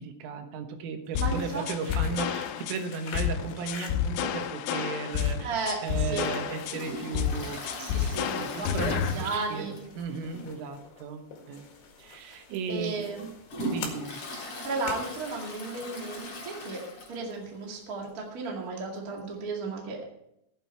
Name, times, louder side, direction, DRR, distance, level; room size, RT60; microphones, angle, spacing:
voice 1, 0.0-5.5 5.8-7.6 8.3-11.6 12.0-13.1 13.7-14.2, right 5 dB, 80° right, 6 dB, 3.8 m, -36 dB
sound 1, 1.1-16.7, left 5 dB, 60° left, 3.6 m, -48 dB
sound 2, 1.2-9.2, left 9 dB, 80° left, 3.1 m, -30 dB
voice 2, 1.2-1.6 2.0-2.3 5.4-6.3 7.8-9.8 12.7-13.3 14.6-16.8 17.1-20.1, right 3 dB, 45° right, -1 dB, 1.1 m, -34 dB
Toilet flush, 6.7-10.1 10.4-10.5 10.9-11.0 11.9-12.0 12.5-17.4 17.8-17.9 18.0-18.1 19.2-19.3, equal, 40° left, 4.5 m, -39 dB
15.5 x 9.0 x 4.6 m, 0.82 s
omnidirectional pair, 5.7 m